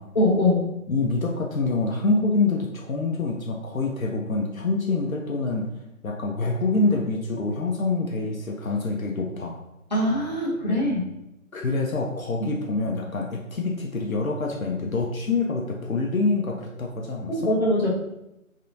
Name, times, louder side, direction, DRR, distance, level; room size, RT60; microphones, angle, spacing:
voice 1, 0.1-0.7 9.9-11.1 17.3-17.9, left 1 dB, 30° left, -9 dB, 0.9 m, -22 dB
voice 2, 0.9-5.7 6.0-9.6 11.5-17.3, left 3 dB, 70° left, 0 dB, 0.6 m, -26 dB
3.3 x 2.8 x 2.6 m, 0.88 s
figure-of-eight pair, 170°, 43 cm